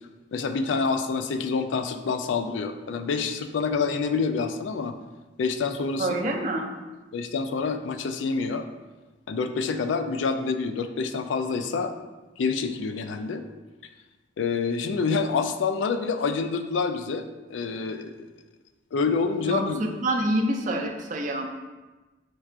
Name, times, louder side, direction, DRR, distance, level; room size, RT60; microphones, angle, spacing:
voice 1, 0.3-5.0 5.4-6.1 7.1-8.7 9.3-11.9 12.4-13.4 14.4-17.2 17.5-18.3 18.9-19.9, left 4 dB, 85° left, 8 dB, 0.4 m, -27 dB
voice 2, 6.0-6.7 19.4-21.5, right 1 dB, 45° right, 3 dB, 0.5 m, -27 dB
4.6 x 2.4 x 4.3 m, 1.2 s
head